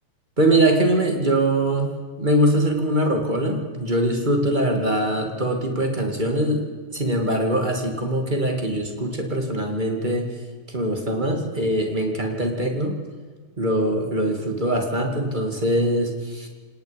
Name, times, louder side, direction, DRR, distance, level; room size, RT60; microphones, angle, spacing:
voice 1, 0.4-6.6 6.9-10.3 10.7-13.0 13.6-16.5, right 1 dB, 20° right, 2 dB, 1.2 m, -22 dB
27.0 x 19.0 x 5.3 m, 1.6 s
omnidirectional pair, 5.2 m